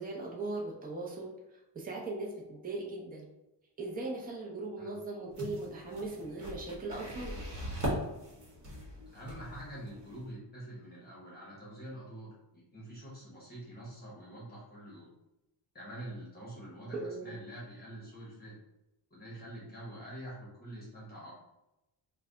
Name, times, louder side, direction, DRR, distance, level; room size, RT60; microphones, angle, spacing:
voice 1, 0.0-1.3 1.7-3.3 3.8-7.4 16.9-17.3, right 2 dB, 20° right, -2 dB, 0.6 m, -39 dB
sound 1, 5.3-10.3, equal, 40° right, 1.2 m, -40 dB
voice 2, 9.1-15.1 15.7-18.6 19.1-21.3, right 1 dB, 20° left, -6 dB, 1.1 m, -46 dB
3.3 x 2.2 x 3.8 m, 0.94 s
cardioid pair, 145°, 45 cm